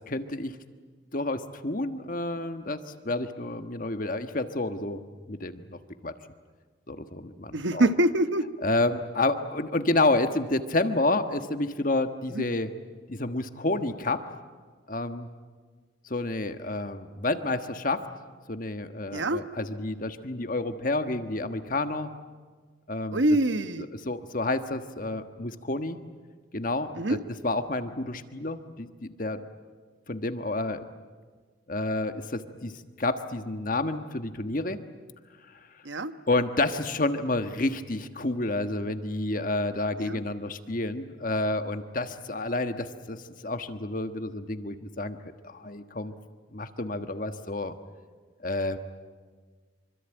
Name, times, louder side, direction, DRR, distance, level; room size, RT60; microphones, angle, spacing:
voice 1, 0.1-0.5 1.1-6.1 6.9-7.9 8.6-12.7 13.1-14.2 14.9-15.3 16.0-18.0 18.5-22.1 22.9-23.2 24.0-26.0 26.5-27.2 27.4-29.4 30.1-30.9 31.7-34.8 36.3-43.2 43.4-45.2 45.4-46.1 46.5-47.7 48.4-48.8, left 2 dB, 45° left, 8 dB, 1.4 m, -29 dB
voice 2, 7.5-8.4 12.3-12.4 19.1-19.4 23.1-23.9 27.0-27.2 35.8-36.1 40.0-40.2, right 1 dB, 70° right, 11 dB, 1.2 m, -25 dB
26.0 x 25.5 x 9.0 m, 1.5 s
head